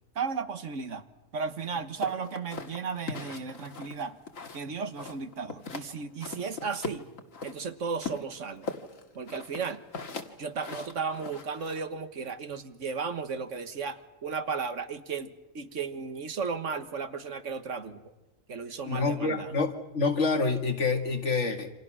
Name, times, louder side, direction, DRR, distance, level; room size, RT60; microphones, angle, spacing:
voice 1, 0.1-1.0 1.3-4.2 4.5-7.1 7.4-8.7 9.1-9.8 10.4-15.3 15.5-18.0 18.5-19.5, right 5 dB, 70° right, 10 dB, 1.7 m, -34 dB
sound 1, 2.0-4.7 5.0-5.9 6.2-7.6 8.0-11.8, left 4 dB, 80° left, 2.2 m, -39 dB
voice 2, 18.8-21.7, left 4 dB, 60° left, 6 dB, 2.3 m, -27 dB
28.5 x 26.5 x 6.2 m, 1.1 s
omnidirectional pair, 1.4 m